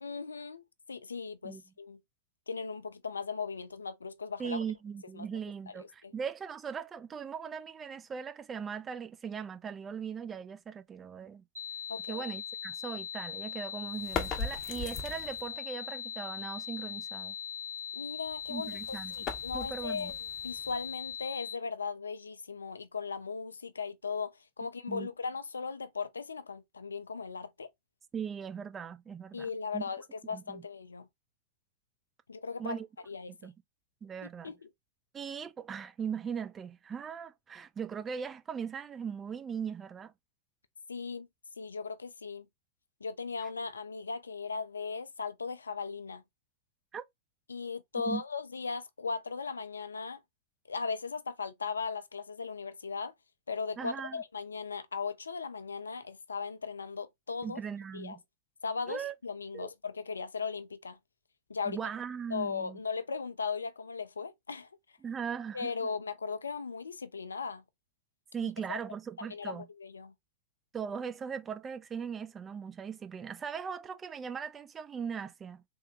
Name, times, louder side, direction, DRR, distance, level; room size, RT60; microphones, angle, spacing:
voice 1, 0.0-2.0 2.5-4.6 5.1-5.3 6.0-6.1 11.9-12.3 17.9-20.1 20.4-27.7 29.3-31.1 32.3-32.8 33.1-33.4 34.2-34.7 40.9-41.3 41.6-42.5 43.0-46.2 47.5-50.2 50.7-53.1 53.5-57.6 57.9-58.2 58.6-61.0 61.5-61.8 62.3-64.7 65.5-67.6 68.7-68.8 69.2-70.1, left 5 dB, 75° left, 0.3 m, -38 dB
voice 2, 4.4-11.4 12.1-17.4 18.5-19.3 19.5-20.1 24.9-25.1 28.1-29.8 30.3-30.6 32.6-32.9 33.3-33.5 34.0-34.5 35.1-40.1 46.9-47.0 48.1-48.2 53.8-54.2 57.4-58.2 58.9-59.1 59.5-59.7 61.7-62.8 65.0-65.7 68.3-69.7 70.7-75.6, right 7 dB, 20° right, 0.4 m, -39 dB
sound 1, 11.5-21.5, left 8 dB, 75° right, 0.5 m, -40 dB
sound 2, 13.9-15.6 18.3-21.2, left 5 dB, 35° left, 0.7 m, -40 dB
3.5 x 2.1 x 2.7 m
figure-of-eight pair, 90°, 0 cm